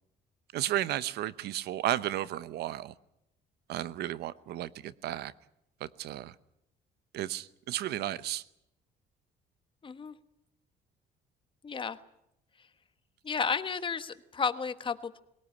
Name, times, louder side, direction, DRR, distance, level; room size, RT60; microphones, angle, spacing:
voice 1, 0.5-2.9 3.7-5.3 5.8-6.3 7.1-8.4, right 13 dB, 75° right, 17 dB, 0.9 m, -33 dB
voice 2, 9.8-10.2 11.6-12.0 13.2-15.2, left 5 dB, 30° left, 12 dB, 1.2 m, -32 dB
22.0 x 18.0 x 9.8 m, 0.81 s
cardioid pair, 110°, 17 cm